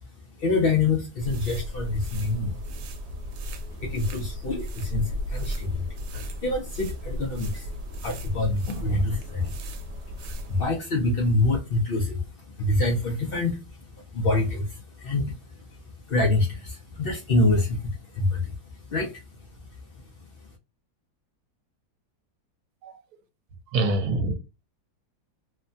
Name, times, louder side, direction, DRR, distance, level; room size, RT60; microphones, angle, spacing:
voice 1, 0.4-2.6 3.4-9.8 10.2-15.8 16.1-19.8 20.4-20.5, left 2 dB, 75° left, 0.5 m, -27 dB
sound 1, 1.2-10.8, equal, 90° right, 1.2 m, -35 dB
voice 2, 23.7-24.3, right 2 dB, 70° right, 1.1 m, -25 dB
3.0 x 2.1 x 2.5 m
omnidirectional pair, 1.8 m